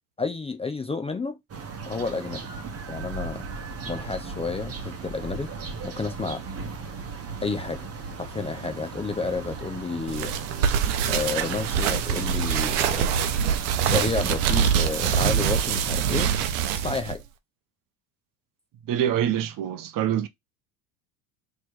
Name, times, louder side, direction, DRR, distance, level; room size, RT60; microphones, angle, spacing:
voice 1, 0.2-1.4 1.9-2.4 2.9-3.5 3.9-5.5 5.8-6.4 7.4-7.9 8.2-10.3 11.1-13.1 13.8-16.3 16.8-17.2, left 4 dB, 15° left, 0.5 m, -30 dB
sound 1, 1.5-16.5, right 4 dB, 35° right, 1.1 m, -37 dB
sound 2, 10.1-17.1, right 8 dB, 80° right, 0.8 m, -24 dB
voice 2, 18.9-20.3, right 10 dB, 50° right, 0.7 m, -25 dB
4.1 x 3.2 x 3.1 m
supercardioid pair, 90°, 43 cm